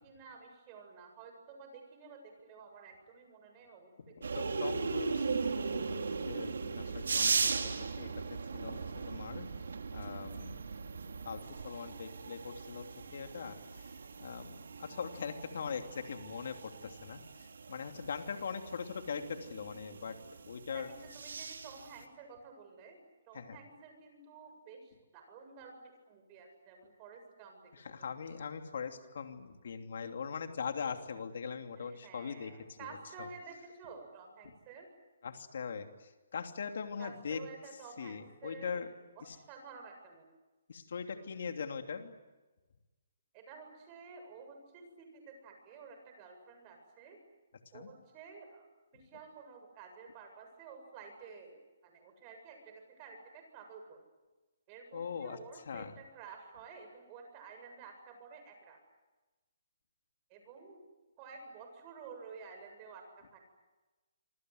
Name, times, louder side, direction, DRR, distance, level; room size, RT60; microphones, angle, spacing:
voice 1, 0.0-4.3 20.7-23.0 23.3-27.7 28.0-28.5 31.8-34.9 37.0-38.8 39.2-40.3 43.3-47.2 47.7-48.7 48.9-52.6 52.9-54.0 54.7-58.8 60.3-60.8 61.2-63.4, right 5 dB, 25° right, 5 dB, 7.8 m, -52 dB
sound 1, 4.2-22.0, right 4 dB, 85° right, 3.1 m, -38 dB
voice 2, 4.3-9.5 9.9-10.6 11.2-13.9 14.2-20.2 20.5-20.9 23.3-23.6 27.7-32.8 33.2-33.3 35.2-37.4 38.0-38.9 39.2-39.4 40.7-42.1 47.7-47.9 54.9-55.4 55.7-55.9, left 6 dB, 65° left, 5 dB, 3.0 m, -41 dB
27.0 x 26.0 x 8.0 m, 1.1 s
hypercardioid pair, 155°, 0 cm